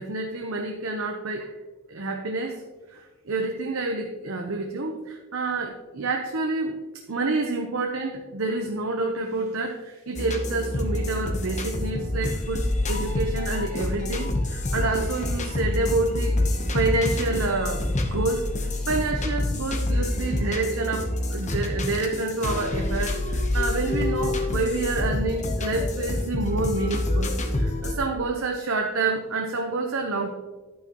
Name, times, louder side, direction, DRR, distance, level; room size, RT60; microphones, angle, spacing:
voice 1, 0.0-1.5 1.9-2.6 2.9-6.8 7.1-16.4 16.7-18.5 18.9-30.4, right 3 dB, 65° right, 2 dB, 0.9 m, -28 dB
sound 1, 10.1-27.9, left 1 dB, 35° left, 1.1 m, -27 dB
10.5 x 9.3 x 3.1 m, 1.2 s
head